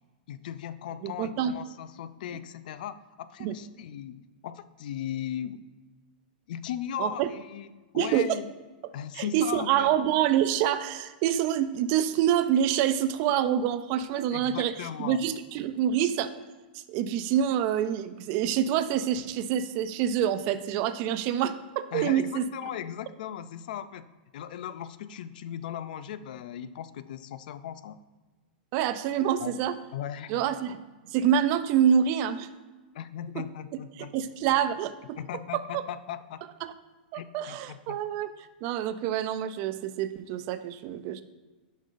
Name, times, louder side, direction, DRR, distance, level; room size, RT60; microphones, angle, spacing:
voice 1, 0.3-5.6 6.5-8.5 8.9-9.9 14.3-15.2 21.9-24.1 24.3-28.0 29.4-29.6 29.9-30.4 32.9-34.2 35.2-36.4 37.1-38.0, left 10 dB, 65° left, 14 dB, 0.3 m, -37 dB
voice 2, 1.0-1.5 2.3-2.4 3.4-3.5 7.0-7.3 7.9-8.3 9.1-16.3 16.7-22.4 28.7-29.7 30.3-30.8 31.1-32.5 33.4-33.5 34.0-35.2 35.5-35.8 36.6-36.7 37.1-38.3 38.6-41.2, right 9 dB, 40° right, 12 dB, 0.3 m, -26 dB
7.3 x 5.3 x 2.5 m, 1.2 s
supercardioid pair, 150°, 5 cm